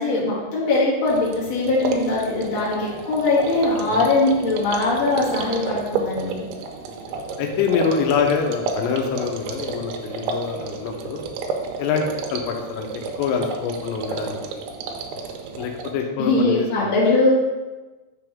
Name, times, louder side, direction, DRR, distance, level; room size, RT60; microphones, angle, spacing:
voice 1, 0.0-6.4 16.2-17.3, left 2 dB, 40° left, -8 dB, 1.9 m, -21 dB
sound 1, 1.1-15.9, right 4 dB, 80° right, 2.8 m, -31 dB
voice 2, 7.4-11.2 11.8-12.9 13.2-14.6 15.5-16.9, left 6 dB, 85° left, 3 dB, 3.4 m, -25 dB
6.9 x 6.8 x 3.5 m, 1.2 s
omnidirectional pair, 5.7 m